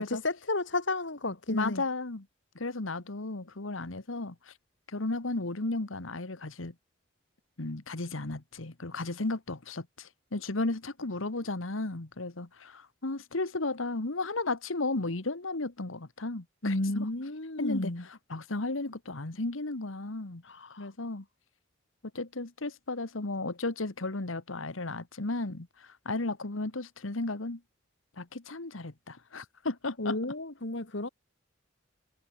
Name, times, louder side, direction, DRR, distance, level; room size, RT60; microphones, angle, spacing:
voice 1, 0.0-1.8 16.6-18.1 20.4-20.9 30.0-31.1, left 2 dB, 65° left, 2.0 m, -32 dB
voice 2, 1.5-2.2 2.5-4.5 4.9-6.7 7.6-17.1 17.6-17.9 18.3-20.4 20.8-21.2 22.1-27.6 28.2-30.2, left 2 dB, 85° left, 1.6 m, -34 dB
head